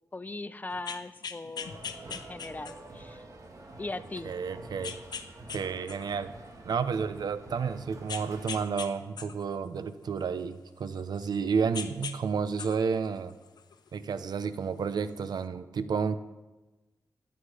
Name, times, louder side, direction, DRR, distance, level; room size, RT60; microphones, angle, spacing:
voice 1, 0.1-3.2 3.8-4.3, left 2 dB, 25° left, 14 dB, 0.6 m, -39 dB
sound 1, 0.7-3.0 3.6-3.7 4.8-5.6 5.9-7.2 8.1-8.9 9.2-11.4 11.7-12.2 12.5-13.9 14.9-15.0, left 6 dB, 80° left, 1.0 m, -40 dB
sound 2, 1.6-8.6, right 2 dB, 50° right, 1.9 m, -48 dB
voice 2, 4.2-5.0 5.5-6.3 6.6-13.3 13.9-16.2, right 6 dB, 75° right, 12 dB, 0.8 m, -31 dB
16.5 x 11.0 x 5.0 m, 1.1 s
wide cardioid pair, 115°, 7 cm